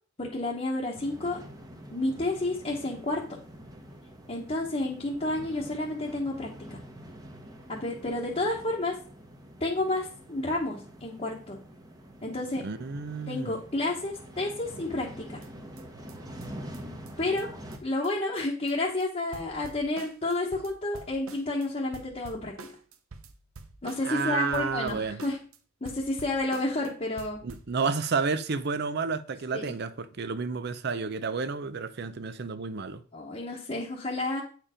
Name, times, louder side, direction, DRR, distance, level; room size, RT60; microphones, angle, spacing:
voice 1, 0.2-1.4 1.9-3.4 4.3-6.8 7.7-8.9 9.6-11.6 12.2-12.6 13.3-15.4 17.2-17.5 17.8-22.7 23.8-25.4 25.8-27.4 29.5-29.8 33.1-34.4, left 2 dB, 30° left, 1.1 m, -30 dB
sound 1, 0.9-17.8, equal, 20° right, 1.0 m, -46 dB
voice 2, 12.6-13.5 24.0-25.2 27.4-33.0, right 5 dB, 50° right, 0.5 m, -31 dB
sound 2, 15.4-15.5 15.8-15.9 16.1-16.2 16.4-16.5 16.7-16.8 17.1-17.2 17.4-17.5 17.7-17.8 18.0-18.1 18.4-18.7 19.0-19.1 19.3-21.7 21.9-24.2 24.5-25.6 25.8-26.9 27.2-27.7, right 3 dB, 90° right, 0.8 m, -47 dB
8.8 x 4.6 x 5.0 m
head